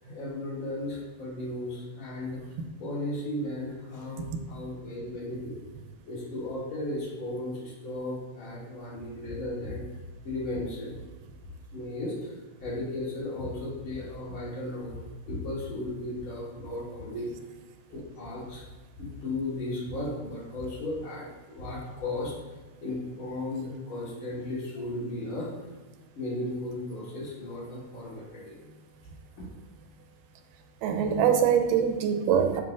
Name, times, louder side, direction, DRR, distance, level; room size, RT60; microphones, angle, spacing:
voice 1, 0.0-2.4 2.8-5.6 6.1-9.8 10.2-11.0 11.7-15.0 15.3-17.3 17.9-18.6 19.0-22.3 22.8-25.5 26.1-28.6, left 2 dB, 40° left, -7 dB, 3.2 m, -35 dB
voice 2, 30.8-32.6, right 8 dB, 90° right, 6 dB, 2.3 m, -24 dB
7.6 x 6.2 x 3.8 m, 1.3 s
omnidirectional pair, 3.9 m